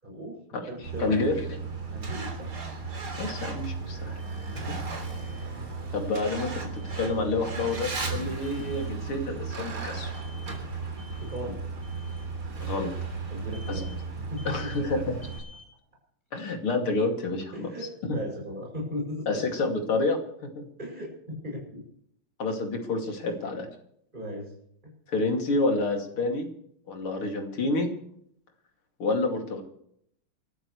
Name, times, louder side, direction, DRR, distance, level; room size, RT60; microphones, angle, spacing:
voice 1, 0.0-1.2 1.9-2.6 4.6-4.8 11.2-11.6 13.3-13.9 14.3-15.0 17.5-19.5 20.8-21.8 23.3-23.4 24.1-24.5, equal, 20° right, -1 dB, 6.8 m, -37 dB
Truck, 0.8-15.4, right 4 dB, 50° right, 4.0 m, -35 dB
voice 2, 1.0-1.3 3.2-4.2 4.5-4.6 5.9-10.1 12.6-12.9 13.7-13.9 14.5-15.2 16.3-17.7 18.1-18.2 19.3-20.2 20.6-20.7 22.4-23.7 25.1-26.5 26.9-27.9 29.0-29.6, left 2 dB, 75° left, 2 dB, 3.4 m, -28 dB
Alarm, 4.2-4.6 5.0-5.5 6.7-7.2 7.6-8.1 8.4-8.9 10.1-10.6 11.0-11.4 11.8-12.3 13.5-14.0 14.4-14.8 15.2-15.7, left 2 dB, 10° left, 6.7 m, -52 dB
28.0 x 13.0 x 3.2 m, 0.70 s
omnidirectional pair, 2.4 m